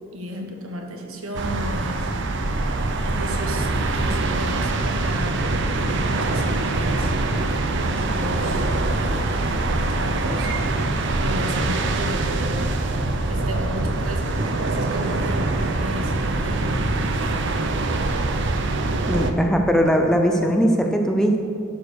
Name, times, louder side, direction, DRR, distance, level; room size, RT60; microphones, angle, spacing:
voice 1, 0.1-2.6 3.0-5.4 5.7-7.2 7.5-9.5 9.9-10.5 11.2-12.7 13.3-17.4, equal, 70° right, 2 dB, 1.3 m, -34 dB
sound 1, 1.3-19.3, right 2 dB, 55° right, 0.6 m, -24 dB
Microwave oven, 9.7-14.8, equal, 20° right, 2.7 m, -42 dB
voice 2, 19.1-21.4, equal, 5° left, 3 dB, 0.5 m, -19 dB
11.5 x 4.6 x 6.5 m, 2.4 s
head